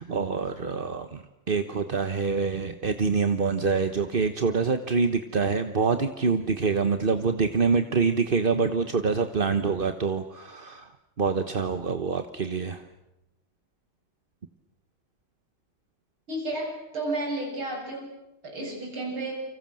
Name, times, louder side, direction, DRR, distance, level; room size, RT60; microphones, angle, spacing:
voice 1, 0.0-10.9 11.2-12.8, right 5 dB, 35° right, 8 dB, 1.0 m, -26 dB
voice 2, 16.3-18.1 18.4-19.3, right 2 dB, 85° right, 0 dB, 8.6 m, -32 dB
30.0 x 25.0 x 7.7 m, 0.94 s
omnidirectional pair, 2.2 m